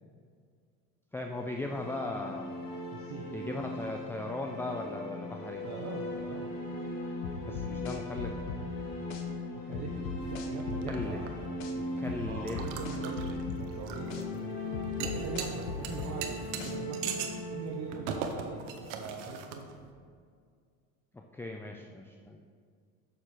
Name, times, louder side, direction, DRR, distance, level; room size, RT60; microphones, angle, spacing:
voice 1, 1.1-2.5 3.3-5.6 7.5-8.4 10.9-11.2 11.7-12.6 21.1-22.4, left 2 dB, 5° left, 2 dB, 0.4 m, -38 dB
sound 1, 1.3-19.2, left 1 dB, 70° left, 1.8 m, -39 dB
voice 2, 2.9-3.3 5.6-6.5 9.5-10.0 10.3-11.3 12.2-13.3 13.5-14.6 15.0-17.2 17.5-19.6, right 4 dB, 50° right, 0 dB, 1.0 m, -42 dB
sound 2, 7.2-8.6 9.1-9.2 9.7-11.1 11.6-11.7 12.1-13.6 14.1-14.2 14.7-16.1 16.6-16.7, left 6 dB, 85° left, 0.9 m, -39 dB
sound 3, 10.2-19.9, right 7 dB, 85° right, 0.9 m, -42 dB
6.7 x 6.6 x 4.4 m, 2.1 s
supercardioid pair, 90°, 35 cm